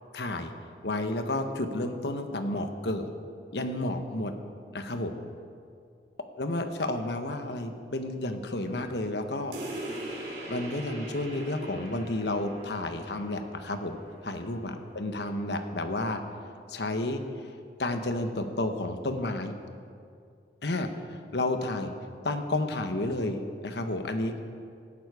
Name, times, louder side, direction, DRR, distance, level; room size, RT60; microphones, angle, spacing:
voice 1, 0.1-0.5 0.8-3.1 3.5-4.3 4.7-5.2 6.4-9.5 10.5-14.0 14.2-16.2 16.7-17.2 17.8-19.5 20.6-20.9 21.3-21.9 22.2-24.4, left 2 dB, 75° left, 7 dB, 1.1 m, -31 dB
sound 1, 9.5-14.6, right 1 dB, 70° right, 4.2 m, -41 dB
17.5 x 11.5 x 4.9 m, 2.3 s
head